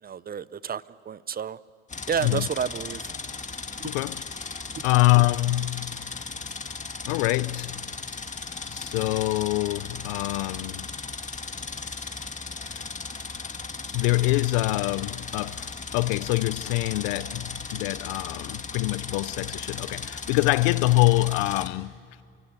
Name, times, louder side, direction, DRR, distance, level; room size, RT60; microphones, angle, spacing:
voice 1, 0.0-1.6 2.1-3.1 3.8-3.9 4.8-4.9, right 7 dB, 30° right, 0.7 m, -31 dB
sound 1, 1.9-21.7, left 4 dB, 25° left, 1.9 m, -37 dB
voice 2, 3.8-6.0 7.0-7.9 8.7-10.9 12.7-12.9 13.9-22.0, left 20 dB, 80° left, 0.6 m, -25 dB
28.5 x 22.5 x 8.3 m
supercardioid pair, 80°, 30 cm